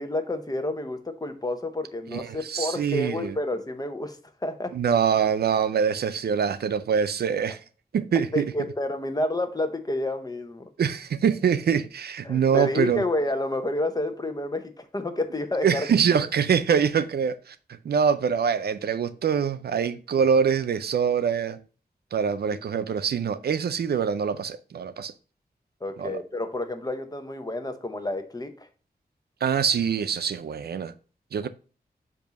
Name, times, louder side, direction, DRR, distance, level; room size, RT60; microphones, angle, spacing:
voice 1, 0.0-4.2 4.4-4.8 8.3-10.7 12.2-15.9 25.8-28.7 31.4-31.5, left 2 dB, 25° left, 0.8 m, -29 dB
voice 2, 2.1-3.3 4.7-7.6 7.9-8.5 10.8-13.0 15.6-21.6 22.1-25.1 26.0-26.2 29.4-30.9 31.3-31.5, right 7 dB, 80° right, 0.4 m, -24 dB
7.1 x 2.7 x 5.1 m
wide cardioid pair, 85°, 16 cm